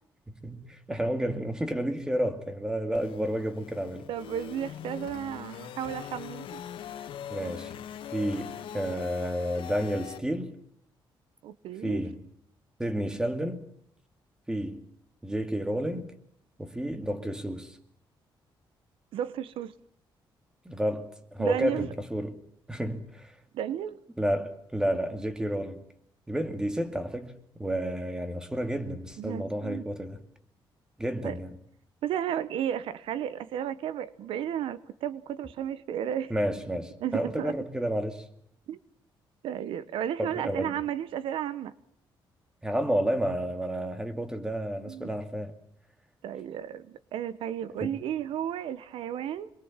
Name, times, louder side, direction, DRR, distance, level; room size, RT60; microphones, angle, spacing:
voice 1, 0.3-4.1 7.3-7.7 8.1-10.6 11.8-12.2 12.8-13.7 14.5-14.9 15.2-16.1 16.6-17.8 20.7-22.4 22.7-23.3 24.2-25.8 26.3-30.2 31.0-31.6 36.3-38.2 40.2-40.8 42.6-45.5 47.6-47.9, equal, 10° right, 2.3 m, -31 dB
sound 1, 2.9-10.2, left 10 dB, 80° left, 2.0 m, -42 dB
voice 2, 4.1-6.6 11.4-12.0 19.1-19.7 21.4-21.9 23.5-24.0 29.2-29.8 31.2-31.4 32.0-36.3 37.0-37.6 38.7-38.8 39.4-41.7 44.9-45.1 46.2-49.5, right 10 dB, 90° right, 1.1 m, -33 dB
26.0 x 22.5 x 7.4 m
cardioid pair, 145°, 9 cm